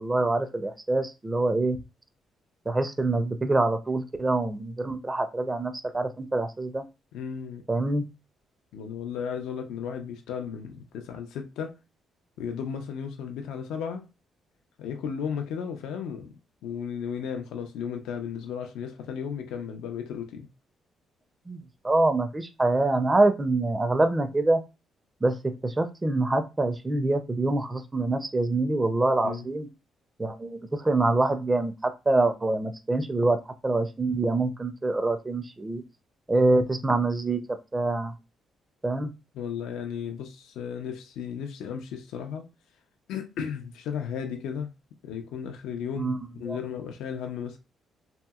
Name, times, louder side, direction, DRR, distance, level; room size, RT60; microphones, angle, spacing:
voice 1, 0.0-1.8 2.7-6.8 7.7-8.0 21.5-21.6 21.8-24.6 25.2-29.7 30.2-33.4 33.6-35.8 36.3-37.4 37.7-38.1 38.8-39.1 46.0-46.2 46.5-46.6, right 2 dB, 20° right, 0.4 m, -25 dB
voice 2, 7.1-7.6 8.7-11.7 12.4-14.1 14.8-16.4 16.6-20.5 29.2-29.5 39.3-42.4 43.1-44.7 45.0-47.6, left 7 dB, 90° left, 0.4 m, -34 dB
2.8 x 2.7 x 2.3 m
cardioid pair, 90°, 0 cm